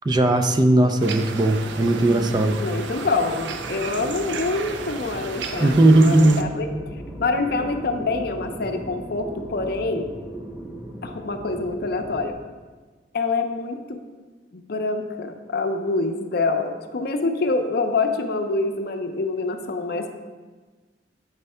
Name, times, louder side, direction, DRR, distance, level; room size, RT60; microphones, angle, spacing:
voice 1, 0.0-2.6 5.6-6.4, right 2 dB, 25° right, 6 dB, 0.4 m, -17 dB
sound 1, 1.0-6.4, right 5 dB, 80° right, 0.5 m, -34 dB
sound 2, 1.5-12.3, right 1 dB, 5° right, 0.8 m, -37 dB
voice 2, 2.6-6.7 7.2-10.1 11.0-12.4 13.1-14.0 14.5-20.1, left 3 dB, 60° left, 6 dB, 0.6 m, -26 dB
8.0 x 3.2 x 5.5 m, 1.4 s
head